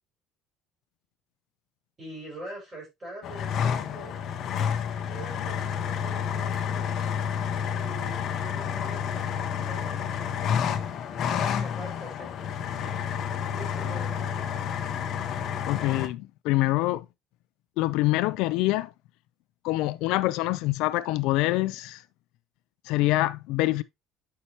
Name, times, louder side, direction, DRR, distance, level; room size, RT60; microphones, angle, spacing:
voice 1, 2.0-4.2 5.0-7.0 7.7-10.0 11.1-13.2 13.5-14.8, right 1 dB, 20° right, 5.5 m, -44 dB
sound 1, 3.2-16.1, left 8 dB, 35° left, 0.7 m, -30 dB
Clapping / Chirp tweet, 4.6-4.9 6.5-6.9, left 3 dB, 5° left, 0.9 m, -50 dB
voice 2, 15.7-17.0 17.8-18.9 19.6-22.0 22.9-23.8, left 18 dB, 65° left, 0.4 m, -25 dB
8.0 x 5.6 x 2.8 m
cardioid pair, 175°, 0 cm